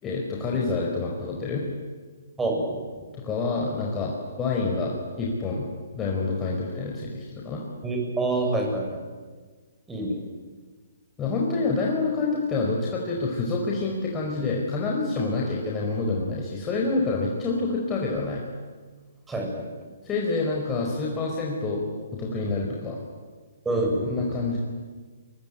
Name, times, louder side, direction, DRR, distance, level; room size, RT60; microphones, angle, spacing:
voice 1, 0.0-1.6 3.2-5.7 5.9-7.6 11.2-18.4 20.0-21.8 22.1-23.0 24.0-24.6, left 3 dB, 15° left, -2 dB, 4.7 m, -27 dB
voice 2, 7.8-9.0 9.9-10.2 19.3-19.5 23.7-24.0, right 2 dB, 5° right, 1 dB, 7.2 m, -26 dB
28.0 x 23.0 x 9.2 m, 1.4 s
hypercardioid pair, 155°, 0 cm